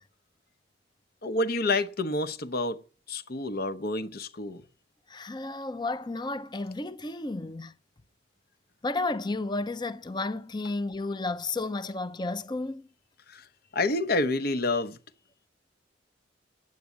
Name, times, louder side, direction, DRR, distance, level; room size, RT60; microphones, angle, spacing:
voice 1, 1.2-2.8 3.1-4.6 13.3-13.4 13.7-15.0, left 2 dB, 55° left, 0.9 m, -28 dB
voice 2, 5.1-7.7 8.8-12.9, left 2 dB, 25° left, 0.6 m, -32 dB
9.4 x 8.4 x 8.5 m
head